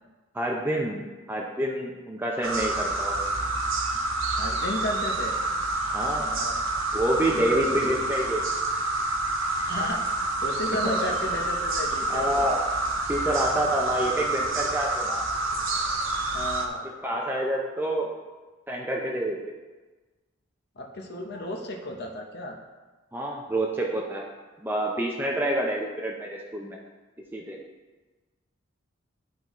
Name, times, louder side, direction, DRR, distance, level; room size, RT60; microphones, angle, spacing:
voice 1, 0.3-3.2 5.9-6.3 6.9-8.4 10.8-11.1 12.1-12.7 13.1-15.2 16.8-18.1 18.7-19.4 23.1-24.2 24.6-26.8 27.3-27.6, right 1 dB, 10° right, -2 dB, 0.5 m, -28 dB
sound 1, 2.4-16.7, right 2 dB, 70° right, 0.8 m, -28 dB
voice 2, 3.9-5.4 5.8-6.5 7.3-8.0 9.6-10.0 10.4-12.5 16.3-16.8 20.8-22.6, left 1 dB, 50° left, 1 dB, 0.8 m, -34 dB
11.5 x 4.0 x 3.0 m, 1.3 s
head